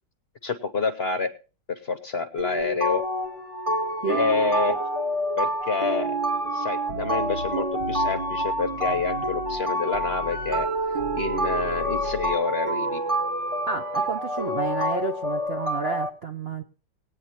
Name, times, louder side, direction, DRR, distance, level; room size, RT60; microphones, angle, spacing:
voice 1, 0.4-1.3 1.7-3.0 4.1-4.8 5.4-6.2 6.5-10.7 11.1-13.0, left 4 dB, 45° left, 8 dB, 0.9 m, -28 dB
sound 1, 2.4-16.1, right 1 dB, 20° right, 1.5 m, -27 dB
sound 2, 6.9-9.6 9.9-12.3, left 5 dB, 75° right, 2.3 m, -39 dB
voice 2, 13.7-16.6, right 4 dB, 55° right, 6 dB, 0.7 m, -30 dB
19.0 x 9.3 x 2.9 m, 0.34 s
omnidirectional pair, 2.0 m